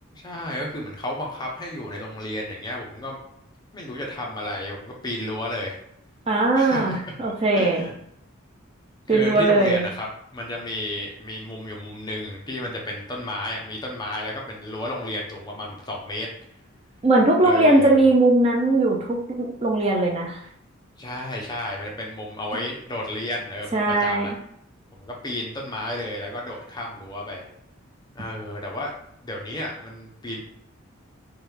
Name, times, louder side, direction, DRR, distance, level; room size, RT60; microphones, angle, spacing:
voice 1, 0.1-3.2 3.7-5.8 6.5-7.0 7.5-7.9 9.1-16.3 17.4-18.1 21.0-24.3 24.9-27.5 28.1-28.9 29.2-30.4, left 1 dB, 20° left, -1 dB, 0.7 m, -32 dB
voice 2, 6.3-7.9 9.1-9.9 17.0-20.4 23.7-24.3, right 2 dB, 25° right, -1 dB, 0.5 m, -19 dB
5.0 x 2.3 x 3.2 m, 0.73 s
head